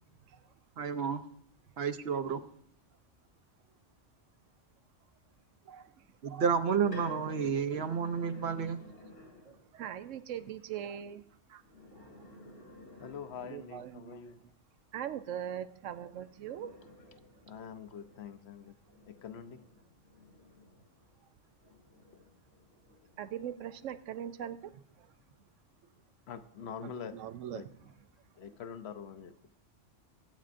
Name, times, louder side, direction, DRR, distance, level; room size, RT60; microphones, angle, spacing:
voice 1, 0.8-1.2 1.8-2.4 6.2-8.8, right 6 dB, 60° right, 10 dB, 0.9 m, -31 dB
voice 2, 5.6-6.5 8.5-8.8 9.5-11.6 12.0-12.1 13.2-14.5 14.9-16.8 23.2-25.1 26.8-27.9, right 10 dB, 90° right, 12 dB, 1.0 m, -42 dB
sound 1, 6.3-9.6 11.6-13.9 15.9-21.1 21.6-23.4, left 2 dB, 90° left, 5.5 m, -52 dB
voice 3, 13.0-14.4 17.5-18.7 19.1-19.6 26.3-27.1 27.5-27.7 28.4-29.3, left 7 dB, 65° left, 10 dB, 0.9 m, -44 dB
22.0 x 8.5 x 2.5 m, 0.70 s
omnidirectional pair, 1.2 m